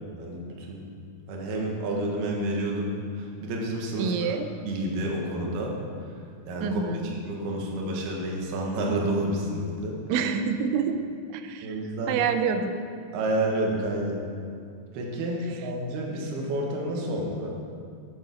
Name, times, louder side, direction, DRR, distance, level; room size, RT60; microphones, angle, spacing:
voice 1, 0.2-0.8 1.3-4.4 4.7-5.8 6.5-10.0 11.6-12.2 13.1-14.2 14.9-17.6, right 1 dB, 65° right, -1 dB, 3.4 m, -29 dB
voice 2, 4.0-4.5 6.6-7.2 10.1-11.0 11.3-11.8 12.1-12.6, right 6 dB, 85° right, 7 dB, 3.1 m, -27 dB
10.0 x 9.7 x 6.4 m, 2.3 s
omnidirectional pair, 5.1 m